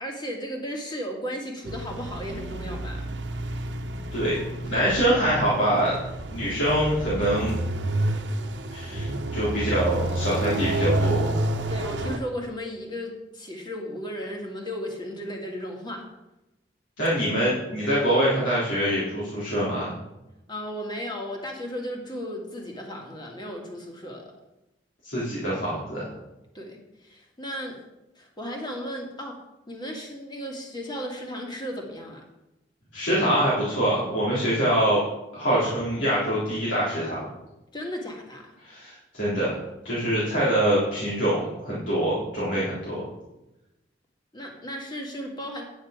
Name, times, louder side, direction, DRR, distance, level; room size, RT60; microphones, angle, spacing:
voice 1, 0.0-3.1 8.9-9.2 9.5-9.9 11.7-16.0 20.5-24.2 26.5-27.7 28.2-29.3 29.7-32.2 37.7-38.6 44.3-45.6, equal, 25° left, 0 dB, 2.2 m, -35 dB
sound 1, 1.7-12.2, right 1 dB, 75° right, 0.9 m, -29 dB
voice 2, 4.7-5.9 6.3-7.6 8.7-11.3 17.0-19.9 25.0-26.1 32.9-35.0 35.3-37.3 38.6-39.6 39.8-43.1, right 1 dB, 85° left, -9 dB, 3.6 m, -24 dB
9.9 x 9.1 x 5.1 m, 0.97 s
head